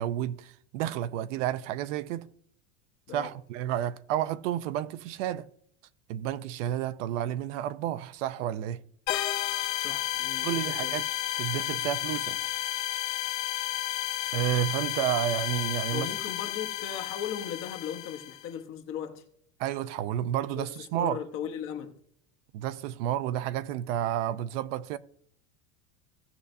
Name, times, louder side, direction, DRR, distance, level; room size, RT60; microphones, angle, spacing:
voice 1, 0.0-2.3 3.1-5.5 6.1-8.8 10.4-11.1 11.4-12.4 14.3-16.1 19.6-21.2 22.5-25.0, right 11 dB, 65° right, 0.6 m, -31 dB
sound 1, 9.1-18.4, left 14 dB, 80° left, 1.2 m, -32 dB
voice 2, 9.8-11.0 14.9-15.0 15.9-19.2 20.5-20.7 20.9-21.9, left 8 dB, 30° left, 1.0 m, -37 dB
17.0 x 6.7 x 2.6 m
cardioid pair, 175°, 40 cm